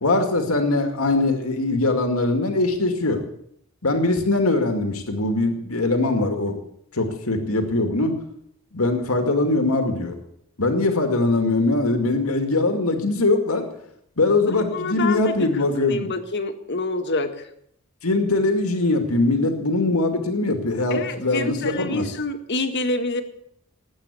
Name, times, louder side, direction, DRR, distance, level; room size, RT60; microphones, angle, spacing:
voice 1, 0.0-3.2 3.8-6.6 6.9-8.2 8.7-10.2 10.6-13.7 14.2-16.1 18.0-22.1, left 2 dB, 80° left, 6 dB, 2.2 m, -21 dB
voice 2, 14.5-17.4 20.9-23.2, left 2 dB, 55° left, 7 dB, 1.7 m, -27 dB
19.5 x 8.9 x 8.4 m, 0.71 s
head